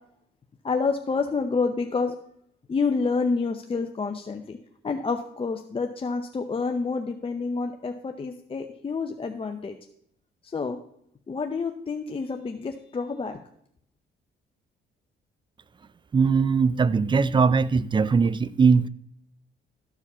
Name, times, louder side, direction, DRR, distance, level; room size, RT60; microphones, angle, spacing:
voice 1, 0.6-2.1 2.7-4.6 4.8-9.7 10.5-10.8 11.3-13.4, left 4 dB, 25° left, 0.7 m, -28 dB
voice 2, 16.1-18.9, right 5 dB, 25° right, 0.4 m, -20 dB
13.0 x 4.9 x 5.5 m
cardioid pair, 90°, 20 cm